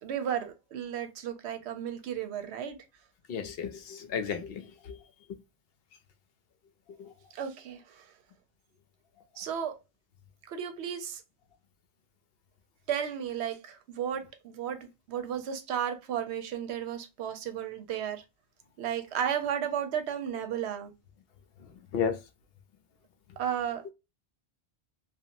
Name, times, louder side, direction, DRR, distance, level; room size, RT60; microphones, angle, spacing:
voice 1, 0.0-2.8 7.3-8.1 9.4-9.8 10.5-11.2 12.9-18.2 18.8-20.9 23.4-23.9, right 9 dB, 85° right, 0.9 m, -34 dB
voice 2, 3.3-5.0 5.3-5.4 6.9-7.1 21.6-22.2, left 7 dB, 70° left, 0.7 m, -34 dB
2.8 x 2.3 x 2.5 m
omnidirectional pair, 1.1 m